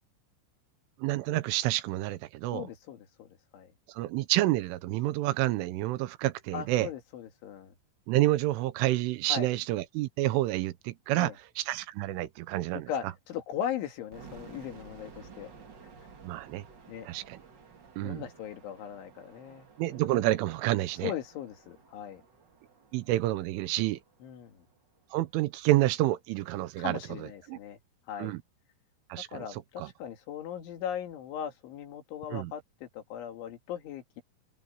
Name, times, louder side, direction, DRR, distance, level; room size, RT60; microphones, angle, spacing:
voice 1, 1.0-2.7 3.9-6.9 8.1-12.9 16.2-16.6 17.0-17.4 18.0-18.2 19.8-21.1 22.9-24.0 25.1-27.0 27.5-27.6 28.2-28.4 29.1-29.9 32.3-32.5, right 16 dB, 85° right, 3.4 m, -29 dB
voice 2, 2.5-3.3 3.5-3.7 6.5-7.7 9.3-9.5 11.1-11.4 12.9-15.5 16.9-17.1 18.0-20.0 21.0-22.2 24.2-24.6 26.8-27.8 28.1-28.3 29.3-34.2, left 9 dB, 70° left, 4.8 m, -38 dB
sound 1, 14.1-25.0, right 5 dB, 70° right, 1.0 m, -54 dB
open air
omnidirectional pair, 5.7 m